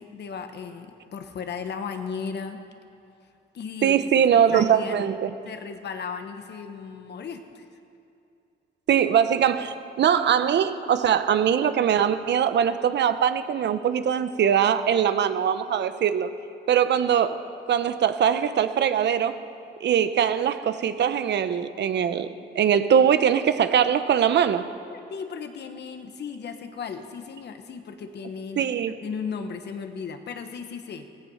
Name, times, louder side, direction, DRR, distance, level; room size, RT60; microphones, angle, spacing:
voice 1, 0.0-2.6 3.5-5.0 5.5-7.6 24.8-28.7 29.0-31.1, left 6 dB, 60° left, 7 dB, 1.4 m, -36 dB
voice 2, 3.8-5.3 8.9-16.3 16.7-17.4 17.7-19.4 19.8-24.6 28.6-28.9, right 8 dB, 60° right, 11 dB, 0.9 m, -22 dB
16.5 x 15.5 x 5.7 m, 2.6 s
cardioid pair, 90°, 20 cm